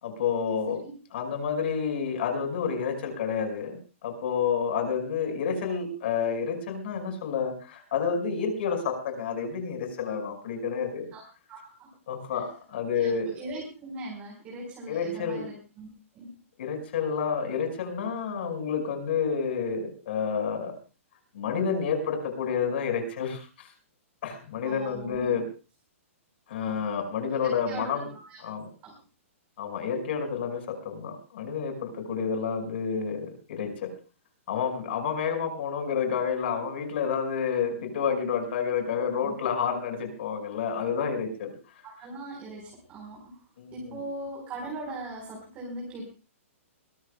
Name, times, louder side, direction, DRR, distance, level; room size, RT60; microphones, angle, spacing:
voice 1, 0.0-0.8 1.1-11.1 12.1-13.4 14.9-15.5 16.6-20.7 21.3-23.7 24.2-25.4 26.5-28.1 28.4-28.6 29.6-33.9 34.5-41.5 43.6-44.0, left 6 dB, 50° left, 5 dB, 5.5 m, -29 dB
voice 2, 11.5-11.9 12.9-15.9 16.1-16.3 24.6-25.3 27.3-28.4 28.8-28.9 39.1-39.5 41.8-43.4 43.7-46.0, right 2 dB, 20° right, -2 dB, 4.3 m, -40 dB
22.5 x 18.5 x 2.3 m, 0.34 s
hypercardioid pair, 165°, 7 cm